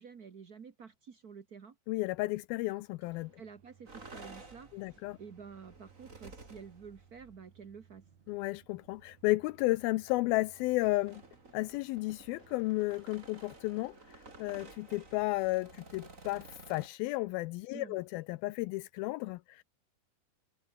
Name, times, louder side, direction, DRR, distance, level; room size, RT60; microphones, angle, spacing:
voice 1, 0.0-1.8 3.4-8.0 17.7-18.0, right 6 dB, 85° right, 0.8 m, -50 dB
voice 2, 1.9-3.3 4.7-5.2 8.3-11.2 11.5-14.0 14.4-19.6, left 20 dB, 85° left, 2.4 m, -33 dB
sound 1, 2.7-14.4, right 7 dB, 50° right, 3.5 m, -64 dB
sound 2, 3.9-7.4 8.4-8.5 8.9-9.1 9.5-16.9, right 3 dB, 20° right, 3.7 m, -54 dB
omnidirectional pair, 4.4 m